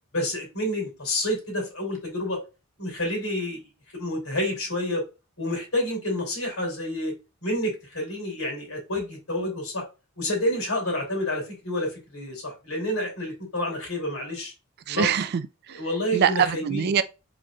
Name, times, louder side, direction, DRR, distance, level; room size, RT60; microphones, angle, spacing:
voice 1, 0.1-2.4 2.8-3.6 3.9-5.0 5.4-7.1 7.4-9.8 10.2-14.5 14.9-15.1 15.8-16.9, left 1 dB, 85° left, 2.8 m, -29 dB
voice 2, 14.9-15.9 16.1-17.0, right 8 dB, 50° right, 0.3 m, -24 dB
5.0 x 4.3 x 2.3 m
head